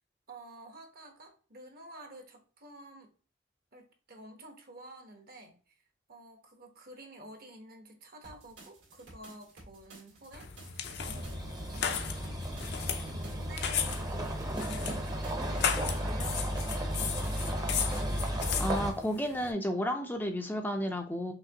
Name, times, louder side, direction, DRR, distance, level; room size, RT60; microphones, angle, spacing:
voice 1, 0.3-3.1 3.7-5.8 6.1-12.5 13.1-15.6 15.9-17.5, right 1 dB, 50° right, 4 dB, 1.0 m, -50 dB
sound 1, 8.2-18.9, right 2 dB, 70° right, 1.9 m, -54 dB
sound 2, 10.3-19.5, left 8 dB, 55° left, 0.5 m, -36 dB
sound 3, 11.0-18.9, equal, 20° right, 0.8 m, -34 dB
voice 2, 18.6-21.3, equal, 10° left, 3 dB, 0.5 m, -32 dB
5.8 x 3.0 x 2.8 m, 0.39 s
head